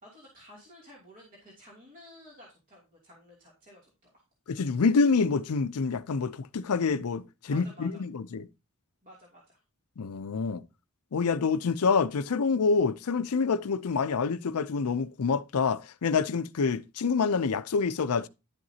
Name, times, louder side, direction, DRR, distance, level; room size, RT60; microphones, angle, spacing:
voice 1, 0.0-4.2 7.5-8.0 9.0-9.6, equal, 40° right, 2.7 m, -53 dB
voice 2, 4.5-8.5 10.0-10.6 11.1-18.3, left 5 dB, 85° left, 0.5 m, -27 dB
11.0 x 7.8 x 2.8 m
head